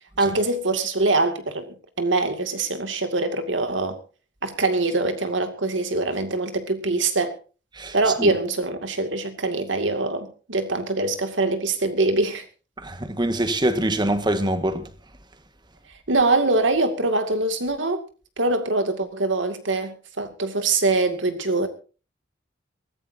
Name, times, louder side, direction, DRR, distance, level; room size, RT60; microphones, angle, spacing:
voice 1, 0.2-4.0 4.4-7.4 7.9-12.4 16.1-18.0 18.4-21.7, right 2 dB, 90° right, 2.4 m, -23 dB
voice 2, 7.7-8.3 12.8-14.9, right 1 dB, 25° right, 1.7 m, -24 dB
23.0 x 14.5 x 2.8 m
head